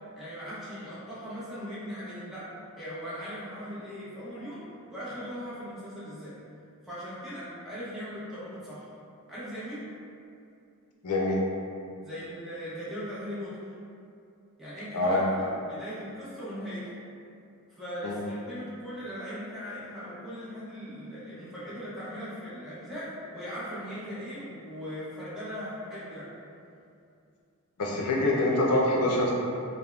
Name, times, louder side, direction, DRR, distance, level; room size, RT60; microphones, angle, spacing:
voice 1, 0.2-4.6 4.9-6.4 6.8-8.9 9.3-9.8 12.0-13.6 14.6-16.9 17.7-26.3, equal, ahead, -11 dB, 0.7 m, -39 dB
voice 2, 11.0-11.4 14.9-15.2 18.0-18.2 27.8-29.3, left 1 dB, 85° left, -2 dB, 0.5 m, -25 dB
3.4 x 2.1 x 2.3 m, 2.5 s
head